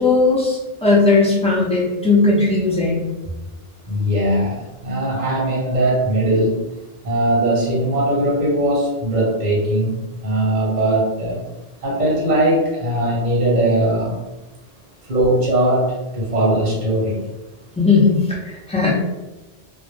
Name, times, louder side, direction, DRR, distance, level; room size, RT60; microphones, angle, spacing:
voice 1, 0.0-3.1 17.8-19.0, left 3 dB, 10° left, -5 dB, 0.3 m, -17 dB
voice 2, 3.9-6.6 7.0-11.4 11.8-14.2 15.1-17.3, right 1 dB, 45° right, -5 dB, 0.8 m, -19 dB
2.0 x 2.0 x 3.0 m, 1.1 s
omnidirectional pair, 1.0 m